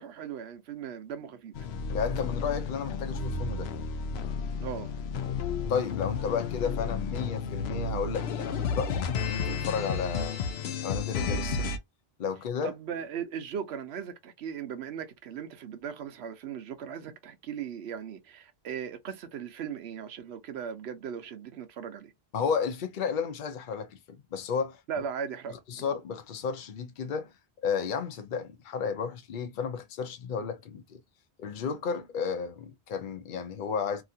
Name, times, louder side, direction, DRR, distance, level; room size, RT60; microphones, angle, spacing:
voice 1, 0.0-1.6 4.6-4.9 12.6-22.1 24.9-25.6, right 7 dB, 90° right, 0.9 m, -38 dB
sound 1, 1.6-11.8, left 5 dB, 85° left, 0.8 m, -32 dB
voice 2, 1.9-3.7 5.7-10.5 10.8-11.7 12.2-12.7 22.3-24.8 25.7-27.3 27.6-31.0 31.4-34.0, left 6 dB, 55° left, 0.8 m, -32 dB
2.8 x 2.5 x 2.7 m
omnidirectional pair, 1.0 m